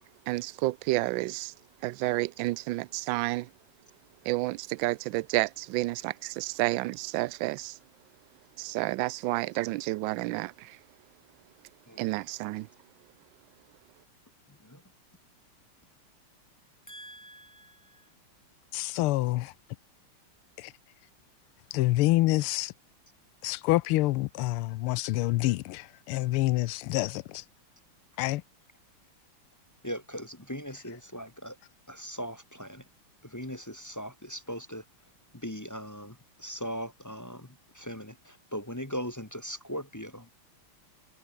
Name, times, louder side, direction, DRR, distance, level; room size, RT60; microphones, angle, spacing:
voice 1, 0.3-1.5 1.8-3.5 4.2-7.8 8.6-10.8 12.0-12.7, right 19 dB, 75° right, 1.2 m, -30 dB
voice 2, 16.9-18.0 29.8-31.6 31.9-32.8 33.2-34.8 35.3-40.3, equal, 10° left, 1.0 m, -39 dB
voice 3, 18.7-19.5 20.6-20.7 21.7-22.7 23.4-27.4 28.2-28.4, left 18 dB, 85° left, 1.5 m, -27 dB
omnidirectional pair, 2.4 m